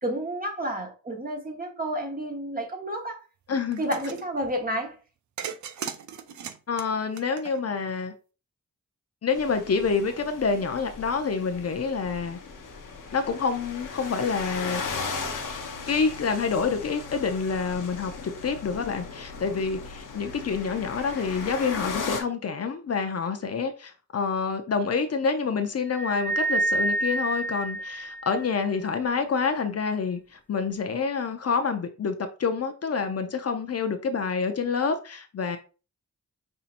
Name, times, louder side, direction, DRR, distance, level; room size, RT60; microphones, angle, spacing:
voice 1, 0.0-3.2 3.8-5.0, right 1 dB, 30° right, 1.3 m, -30 dB
voice 2, 3.5-3.9 6.7-8.1 9.2-12.4 13.1-14.8 15.9-32.1 32.4-35.6, left 5 dB, 50° left, 0.6 m, -27 dB
sound 1, 3.7-4.2 5.4-7.9, right 8 dB, 65° right, 0.5 m, -37 dB
sound 2, 9.3-22.2, left 4 dB, 80° left, 1.0 m, -37 dB
sound 3, 25.9-28.6, right 2 dB, 5° left, 0.3 m, -28 dB
5.5 x 2.8 x 2.5 m
cardioid pair, 70°, 31 cm